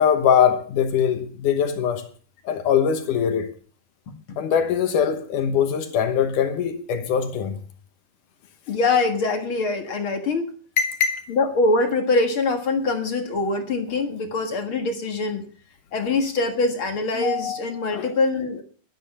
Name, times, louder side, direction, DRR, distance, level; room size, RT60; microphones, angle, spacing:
voice 1, 0.0-2.1 2.5-3.5 4.4-7.6 10.8-11.3 16.0-16.1 17.9-18.1, left 8 dB, 75° left, 2.6 m, -22 dB
voice 2, 4.1-4.4 8.7-10.5 11.3-15.4 15.9-18.6, left 3 dB, 45° left, 2.2 m, -23 dB
12.5 x 12.0 x 5.6 m
omnidirectional pair, 3.8 m